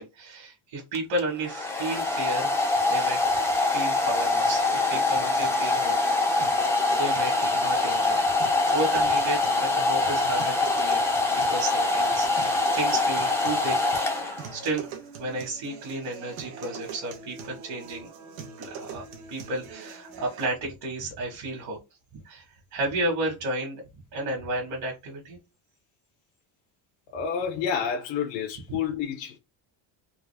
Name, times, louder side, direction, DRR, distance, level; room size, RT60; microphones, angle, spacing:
voice 1, 0.0-3.3 3.6-6.5 7.0-8.3 8.6-11.0 11.3-14.9 15.2-18.1 18.6-21.8 22.2-22.4 22.7-23.8 24.1-25.4, right 2 dB, 55° right, 1.8 m, -33 dB
Domestic sounds home sounds, 0.9-14.7, left 3 dB, 5° left, 0.5 m, -24 dB
sound 1, 4.4-20.5, right 6 dB, 85° right, 1.2 m, -43 dB
voice 2, 27.1-29.4, left 7 dB, 65° left, 0.9 m, -29 dB
3.9 x 2.5 x 3.4 m
cardioid pair, 165°, 46 cm